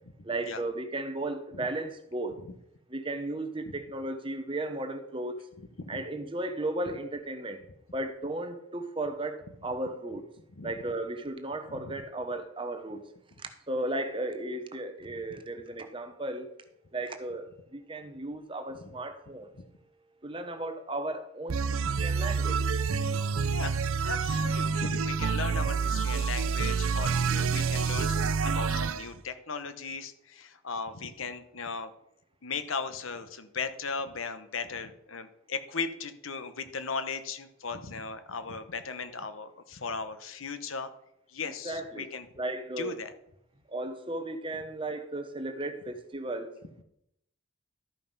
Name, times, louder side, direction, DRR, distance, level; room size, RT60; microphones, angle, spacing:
voice 1, 0.2-2.3 2.9-5.4 5.9-7.6 7.9-10.2 10.6-13.0 13.7-16.5 16.9-19.5 20.2-22.6 41.4-42.1 42.4-42.9 43.7-46.5, right 2 dB, 25° right, 0.9 m, -35 dB
voice 2, 15.0-15.4 18.8-18.9 19.6-19.7 23.0-23.1 23.4-31.9 32.4-40.9 41.3-42.3 42.8-43.1, left 4 dB, 75° left, 1.0 m, -37 dB
sound 1, 21.5-29.0, right 5 dB, 85° right, 0.5 m, -28 dB
13.0 x 5.6 x 5.3 m
head